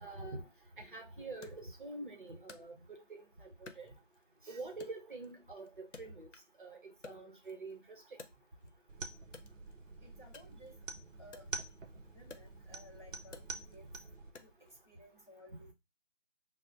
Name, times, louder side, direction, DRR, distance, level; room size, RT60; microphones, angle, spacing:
voice 1, 0.0-0.4 0.8-3.9 4.5-6.3 6.6-8.0, right 3 dB, 45° right, 0.8 m, -46 dB
Wood, 1.4-3.2 3.6-4.4 4.8-6.6 6.9-8.8 9.2-14.8, left 4 dB, 70° left, 0.8 m, -56 dB
sound 1, 8.9-14.3, right 3 dB, 90° right, 0.7 m, -47 dB
voice 2, 10.0-10.8 11.2-11.5 12.0-13.9 14.4-15.7, equal, 25° left, 0.7 m, -57 dB
5.9 x 2.1 x 2.5 m
figure-of-eight pair, 160°, 37 cm